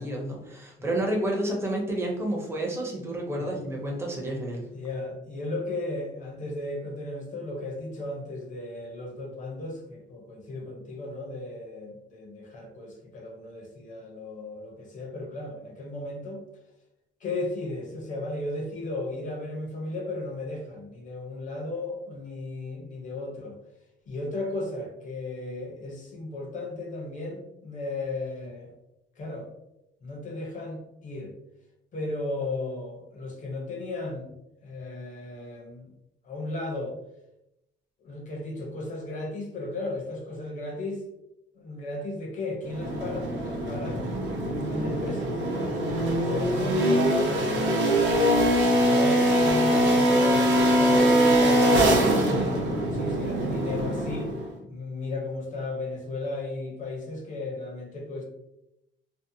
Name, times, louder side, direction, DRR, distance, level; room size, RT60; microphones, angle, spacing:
voice 1, 0.0-4.6, right 1 dB, 15° right, -1 dB, 0.5 m, -30 dB
voice 2, 4.7-16.4 17.2-23.6 24.1-28.7 29.2-29.5 30.0-31.3 31.9-34.2 34.6-35.9 36.2-37.0 38.0-41.0 41.6-44.0 44.7-45.3 46.1-48.4 48.8-54.3 54.6-58.2, left 2 dB, 40° left, 0 dB, 0.6 m, -35 dB
sound 1, 42.7-54.5, right 1 dB, 85° right, 0.6 m, -23 dB
2.6 x 2.0 x 2.6 m, 0.87 s
cardioid pair, 170°, 20 cm